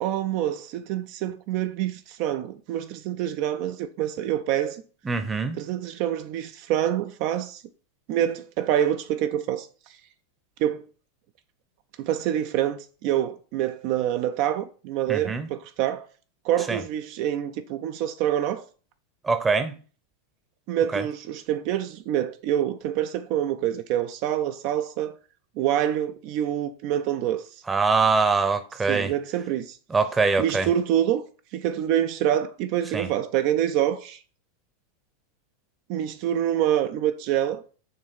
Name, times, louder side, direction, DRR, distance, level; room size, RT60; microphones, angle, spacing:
voice 1, 0.0-4.8 5.6-7.6 8.1-9.7 10.6-10.8 12.0-16.1 16.4-18.6 20.7-25.1 25.6-27.5 28.9-29.8 30.4-31.2 31.5-34.2 35.9-37.8, right 11 dB, 45° right, 0.4 m, -26 dB
voice 2, 5.0-5.6 15.1-15.5 16.7-16.8 19.2-19.7 20.9-21.0 27.7-29.1 29.9-30.7 32.9-33.1, right 4 dB, 15° right, 0.8 m, -23 dB
6.6 x 3.1 x 5.7 m
figure-of-eight pair, 90°, 0 cm